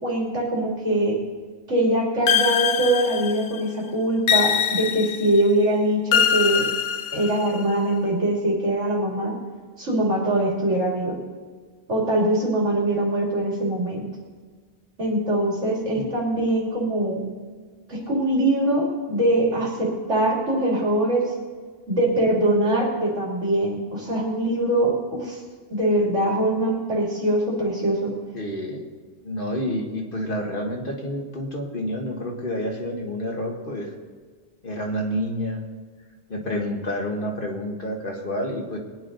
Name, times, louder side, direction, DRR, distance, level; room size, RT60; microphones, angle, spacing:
voice 1, 0.0-1.2 1.7-6.7 7.1-9.4 9.8-11.2 11.9-14.0 15.0-17.2 17.9-21.3 21.9-25.4 25.7-28.1, right 1 dB, 90° right, -3 dB, 3.3 m, -22 dB
sound 1, 2.3-3.6 4.3-5.4 6.1-7.6, left 8 dB, 80° left, 1.0 m, -23 dB
voice 2, 28.3-28.8 29.2-33.9 34.6-35.6 36.3-38.8, equal, 45° left, 2 dB, 1.7 m, -29 dB
21.0 x 9.8 x 4.0 m, 1.5 s
omnidirectional pair, 1.2 m